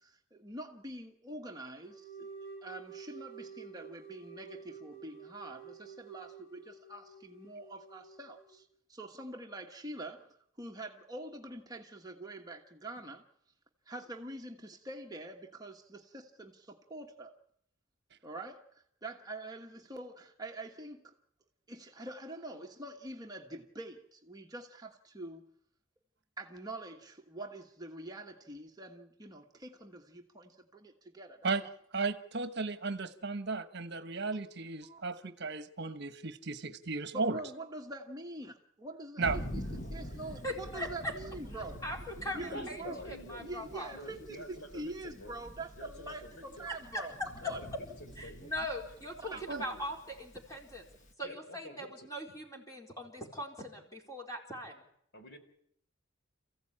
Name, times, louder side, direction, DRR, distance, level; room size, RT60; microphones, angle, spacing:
voice 1, 0.0-2.3 2.6-10.3 10.6-13.2 13.9-17.3 18.2-21.1 21.7-25.4 26.4-31.5 34.9-35.0 37.1-39.6 39.9-41.8 42.2-43.0 43.4-47.1 47.5-47.6 49.2-49.6, right 2 dB, 20° right, 1.3 m, -45 dB
sound 1, 1.8-8.6, right 6 dB, 85° left, 7.2 m, -50 dB
voice 2, 31.9-37.4 39.2-39.4 49.5-49.6, right 4 dB, 55° right, 1.1 m, -35 dB
Thunder, 39.2-51.1, equal, 40° left, 1.5 m, -46 dB
voice 3, 40.4-41.1 41.8-43.9 46.9-47.0 48.2-50.8 51.2-54.8, equal, 15° left, 4.3 m, -40 dB
voice 4, 42.5-43.6 43.9-45.4 45.8-46.7 47.4-47.7 48.0-48.5 49.3-49.8 51.2-52.1 55.1-55.4, equal, 55° left, 3.7 m, -48 dB
28.5 x 15.5 x 8.7 m
head